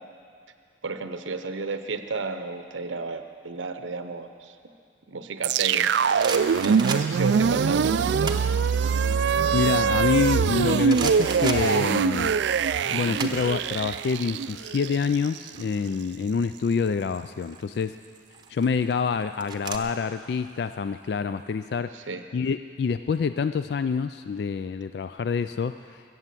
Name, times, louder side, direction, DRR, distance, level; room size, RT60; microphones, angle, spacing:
voice 1, 0.8-4.6 5.1-5.9 6.6-8.4 21.9-22.2, right 4 dB, 85° right, 8 dB, 0.7 m, -33 dB
sound 1, 5.4-15.6, right 6 dB, 65° right, 0.3 m, -23 dB
sound 2, 6.2-7.4 8.0-8.6 9.0-10.5 10.9-12.3 12.5-14.0 14.2-14.4 14.7-16.3 17.2-17.6 18.3-19.8, right 5 dB, 20° right, 0.9 m, -35 dB
voice 2, 9.5-12.3 12.9-18.0 18.5-21.9 22.3-26.0, left 5 dB, 55° left, 11 dB, 0.3 m, -27 dB
23.0 x 8.0 x 7.5 m, 2.4 s
head